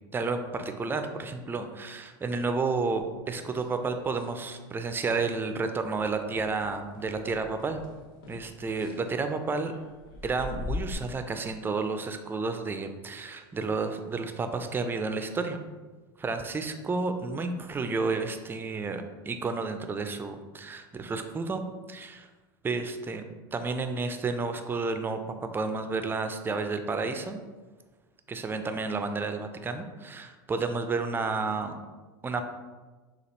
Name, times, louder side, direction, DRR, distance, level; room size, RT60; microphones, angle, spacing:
voice 1, 0.1-7.8 8.3-9.7 10.2-15.6 16.2-21.6 21.9-22.3 22.6-23.2 23.5-27.4 28.3-31.8 32.2-32.4, right 4 dB, 15° right, 7 dB, 0.4 m, -31 dB
sound 1, 2.9-4.3 4.6-5.0 5.3-5.5 5.9-10.9, left 3 dB, 70° left, 0.7 m, -42 dB
6.5 x 2.4 x 2.9 m, 1.3 s
hypercardioid pair, 100°, 12 cm